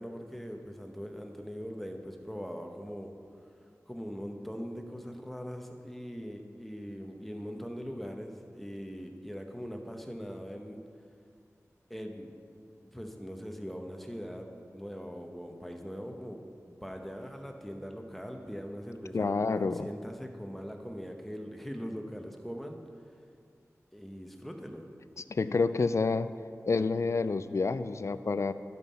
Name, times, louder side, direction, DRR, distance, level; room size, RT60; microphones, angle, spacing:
voice 1, 0.0-3.1 3.9-10.8 11.9-22.8 23.9-24.9, equal, 5° left, 3 dB, 0.9 m, -41 dB
voice 2, 19.1-19.9 25.3-26.3 26.7-28.5, left 4 dB, 55° left, 13 dB, 0.3 m, -28 dB
11.5 x 5.5 x 4.2 m, 2.4 s
wide cardioid pair, 50°, 6 cm